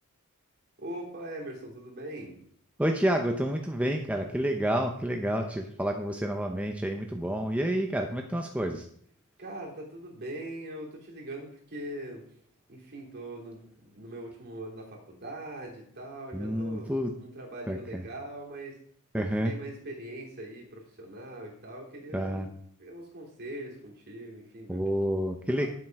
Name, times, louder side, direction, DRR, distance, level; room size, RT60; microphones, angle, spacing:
voice 1, 0.8-2.4 9.4-12.4 12.7-18.8 19.1-22.5 22.8-24.8 25.1-25.2 25.5-25.7, right 1 dB, 45° right, -2 dB, 3.1 m, -41 dB
voice 2, 2.8-8.9 16.3-17.1 17.7-18.0 19.1-19.5 22.1-22.5 24.7-25.7, equal, 5° right, 3 dB, 0.7 m, -29 dB
10.0 x 7.5 x 4.7 m, 0.63 s
head